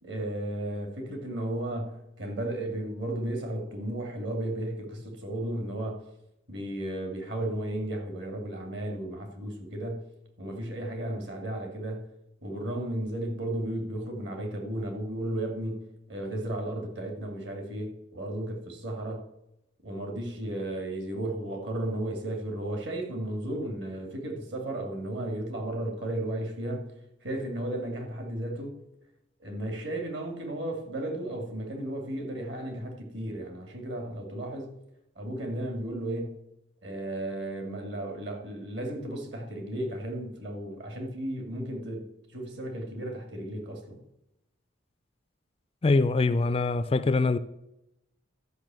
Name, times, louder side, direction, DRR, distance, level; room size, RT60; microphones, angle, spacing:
voice 1, 0.0-6.0 6.5-10.1 10.4-12.1 12.4-19.2 19.8-26.9 27.2-28.8 29.4-34.7 35.2-36.4 36.8-44.0, right 1 dB, 60° right, 2.4 m, -34 dB
voice 2, 45.8-47.4, left 3 dB, 30° left, 0.3 m, -23 dB
12.5 x 5.6 x 7.5 m
head